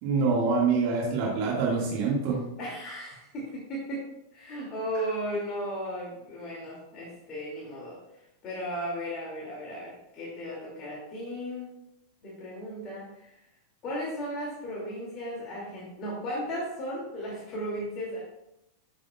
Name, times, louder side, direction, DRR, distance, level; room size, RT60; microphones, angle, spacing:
voice 1, 0.0-2.4, right 4 dB, 45° right, -3 dB, 1.8 m, -25 dB
voice 2, 2.6-4.0 4.3-8.0 8.4-11.7 12.2-13.3 13.8-18.2, equal, 35° left, -5 dB, 2.4 m, -35 dB
8.5 x 7.5 x 2.3 m, 0.85 s
figure-of-eight pair, 90°, 0 cm